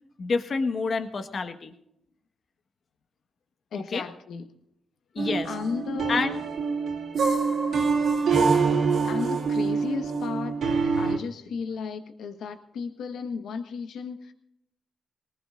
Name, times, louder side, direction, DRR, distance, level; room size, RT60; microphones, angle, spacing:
voice 1, 0.2-1.7 3.7-4.0 5.1-5.5 6.1-6.4, left 4 dB, 50° left, 8 dB, 1.5 m, -28 dB
voice 2, 3.7-4.5 5.4-6.2 9.1-10.6 11.0-14.3, left 5 dB, 80° left, 7 dB, 1.4 m, -34 dB
sound 1, 5.2-11.2, right 5 dB, 70° right, 2.4 m, -25 dB
21.5 x 19.0 x 2.6 m, 0.77 s
cardioid pair, 80°, 0 cm